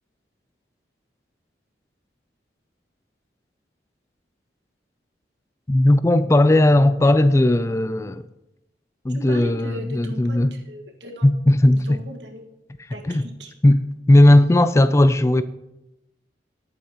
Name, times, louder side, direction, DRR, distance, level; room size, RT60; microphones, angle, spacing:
voice 1, 5.7-8.2 9.0-10.5 11.2-12.0 13.0-13.3 13.6-13.8 14.1-15.4, left 1 dB, 15° left, 0.3 m, -16 dB
voice 2, 9.1-11.3 11.7-12.5 12.9-13.5, equal, 80° right, 1.6 m, -37 dB
18.5 x 8.7 x 2.9 m
head